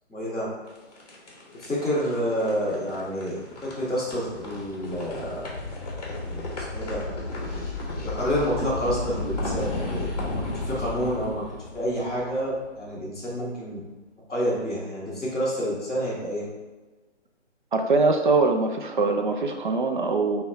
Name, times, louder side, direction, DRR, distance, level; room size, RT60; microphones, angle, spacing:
voice 1, 0.1-0.5 1.6-3.3 3.6-5.5 6.2-6.4 6.7-7.0 8.0-11.4 11.7-13.8 14.3-16.4, equal, ahead, -19 dB, 1.0 m, -28 dB
sound 1, 0.7-12.8, left 2 dB, 35° left, 1.1 m, -34 dB
voice 2, 17.7-20.4, right 3 dB, 45° right, 4 dB, 0.5 m, -22 dB
5.6 x 2.3 x 4.0 m, 1.2 s
hypercardioid pair, 170°, 35 cm